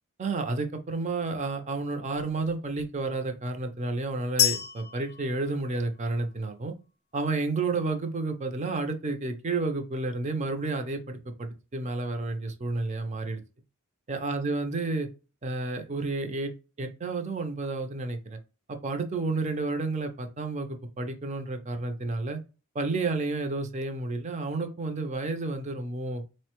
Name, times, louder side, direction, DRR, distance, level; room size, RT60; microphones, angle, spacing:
voice 1, 0.2-6.7 7.1-13.4 14.1-15.1 15.4-16.5 16.8-18.4 18.7-22.4 22.7-26.2, right 3 dB, 35° right, 6 dB, 0.5 m, -31 dB
sound 1, 4.4-6.3, left 10 dB, 50° left, 0.4 m, -29 dB
4.0 x 2.1 x 2.9 m, 0.32 s
head